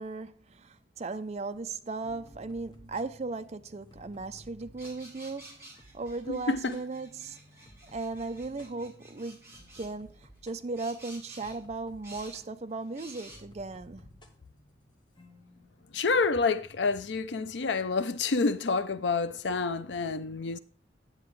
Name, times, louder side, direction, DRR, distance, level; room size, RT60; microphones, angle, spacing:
voice 1, 0.0-5.7 5.9-7.4 7.8-14.1, right 3 dB, 40° right, 0.5 m, -37 dB
sound 1, 1.3-17.5, left 1 dB, 25° left, 1.1 m, -57 dB
sound 2, 4.8-9.9 10.8-11.6 12.0-12.4 12.9-13.4, right 1 dB, 15° right, 2.3 m, -51 dB
voice 2, 6.3-6.8 15.9-20.6, left 4 dB, 80° left, 0.5 m, -28 dB
9.8 x 7.6 x 3.2 m
head